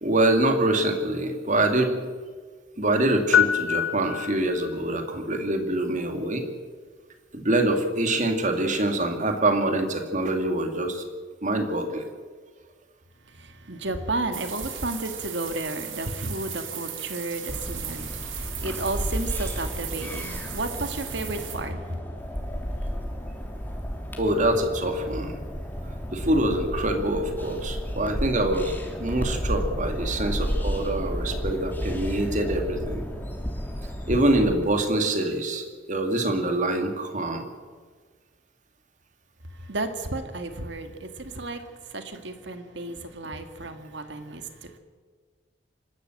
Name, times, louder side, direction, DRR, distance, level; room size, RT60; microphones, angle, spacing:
voice 1, 0.0-1.9 2.8-6.4 7.3-11.0 11.4-12.0 24.2-25.3 26.1-28.7 29.0-33.0 34.1-37.5, right 1 dB, 40° right, 2.4 m, -25 dB
sound 1, 3.3-4.8, left 9 dB, 75° left, 1.0 m, -24 dB
voice 2, 13.3-22.0 39.5-44.8, right 2 dB, 65° right, 1.9 m, -33 dB
sound 2, 14.3-21.6, right 9 dB, 85° right, 3.2 m, -37 dB
sound 3, 17.5-34.6, equal, 10° left, 2.8 m, -32 dB
25.5 x 13.0 x 7.9 m
head